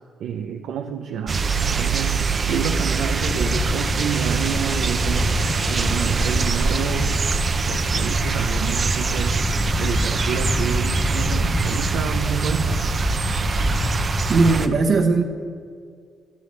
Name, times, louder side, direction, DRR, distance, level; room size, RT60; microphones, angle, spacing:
voice 1, 0.2-7.3 7.7-9.5 9.8-12.8, right 8 dB, 80° right, 4 dB, 0.6 m, -29 dB
sound 1, 1.3-14.7, right 4 dB, 40° right, 0.7 m, -23 dB
Wind, 3.2-14.5, left 2 dB, 20° left, 0.5 m, -28 dB
voice 2, 14.3-15.2, right 3 dB, 55° right, 1 dB, 1.2 m, -18 dB
17.0 x 11.5 x 3.3 m, 2.1 s
cardioid pair, 90°, 0 cm